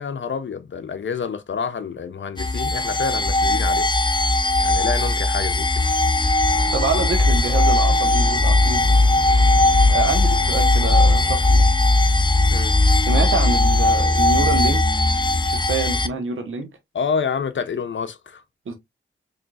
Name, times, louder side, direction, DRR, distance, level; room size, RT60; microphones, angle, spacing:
voice 1, 0.0-3.9 4.6-5.7 12.5-12.7 16.9-18.4, left 6 dB, 65° left, 0.8 m, -28 dB
sound 1, 2.4-16.1, left 2 dB, 20° left, 0.6 m, -18 dB
sound 2, 6.5-11.5, equal, 20° right, 2.0 m, -40 dB
voice 2, 6.7-9.0 9.9-11.7 13.0-15.0 15.4-16.7 18.7-18.8, right 4 dB, 80° right, 1.3 m, -27 dB
4.4 x 3.2 x 2.5 m
cardioid pair, 45°, 21 cm